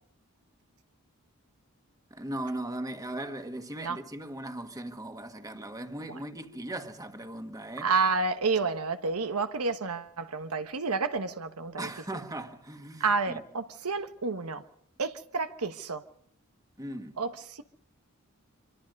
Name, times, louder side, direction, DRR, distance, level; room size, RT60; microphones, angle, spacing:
voice 1, 2.1-7.9 11.8-13.4 16.8-17.2, right 1 dB, 15° right, 1.8 m, -38 dB
voice 2, 7.8-11.9 13.0-14.6 15.0-16.0 17.2-17.6, right 4 dB, 80° right, 1.2 m, -30 dB
25.5 x 25.5 x 5.4 m
head